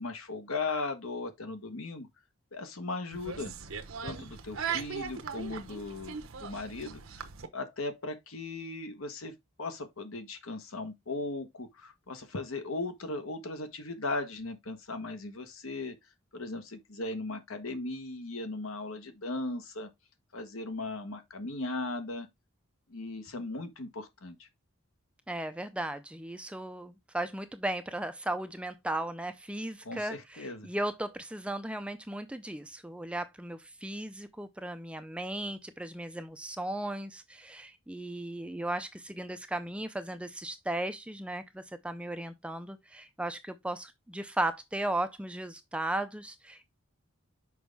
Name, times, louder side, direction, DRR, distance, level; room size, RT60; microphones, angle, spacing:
voice 1, 0.0-2.1 2.5-3.5 4.0-7.3 7.5-9.3 9.6-15.9 16.3-19.9 20.3-22.3 22.9-24.5 29.8-30.7, left 2 dB, 75° left, 1.2 m, -37 dB
sound 1, 3.1-7.5, right 6 dB, 70° right, 0.9 m, -39 dB
voice 2, 25.3-46.7, right 1 dB, 5° right, 0.4 m, -36 dB
6.2 x 5.1 x 3.4 m
head